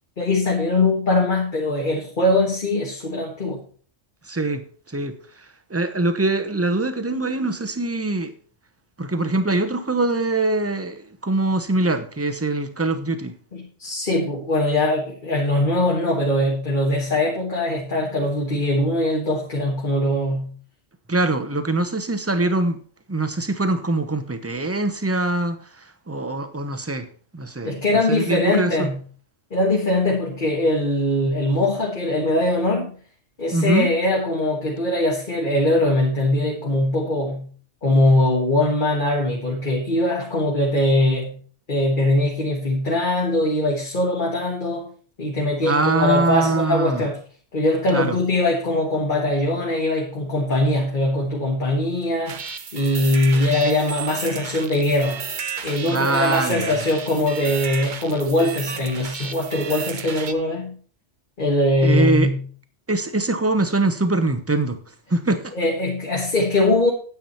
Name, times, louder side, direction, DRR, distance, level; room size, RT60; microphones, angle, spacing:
voice 1, 0.2-3.6 13.5-20.5 27.6-29.0 29.5-32.9 33.4-37.5 37.8-41.4 41.7-44.9 45.2-47.2 47.5-52.4 52.7-55.2 55.6-60.8 61.4-62.4 65.5-66.9, left 1 dB, 45° left, 1.7 m, -21 dB
voice 2, 4.3-4.6 4.9-5.2 5.7-8.3 9.0-13.4 21.1-22.8 23.1-25.6 26.1-27.7 28.1-28.9 33.5-33.9 45.6-47.0 47.9-48.2 55.8-56.7 61.8-62.3 62.9-64.8 65.1-65.5, right 2 dB, 15° right, 0.8 m, -23 dB
sound 1, 52.3-60.3, right 6 dB, 45° right, 0.9 m, -33 dB
9.4 x 8.7 x 4.2 m
omnidirectional pair, 1.2 m